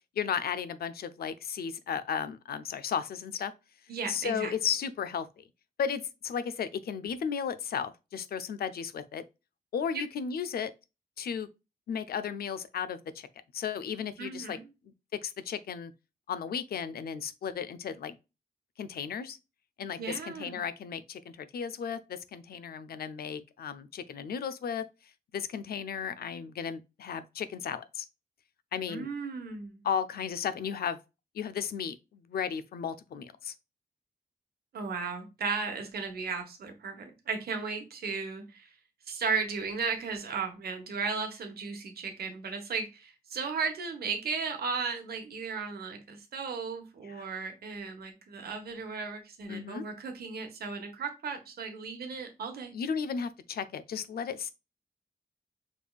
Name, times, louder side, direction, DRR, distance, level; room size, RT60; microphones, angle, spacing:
voice 1, 0.2-3.5 4.1-5.4 5.8-9.2 9.7-10.7 11.2-11.5 11.9-13.3 13.5-14.6 15.1-15.9 16.3-18.2 18.8-19.4 19.8-24.8 25.3-28.0 28.7-29.1 29.8-31.0 31.3-33.5 47.0-47.3 49.5-49.9 52.7-54.5, left 7 dB, 80° left, 0.5 m, -34 dB
voice 2, 3.9-4.5 14.2-14.7 20.0-20.6 28.9-29.8 34.7-38.7 39.1-52.7, right 5 dB, 85° right, 1.2 m, -35 dB
5.2 x 3.3 x 2.3 m
cardioid pair, 95°, 16 cm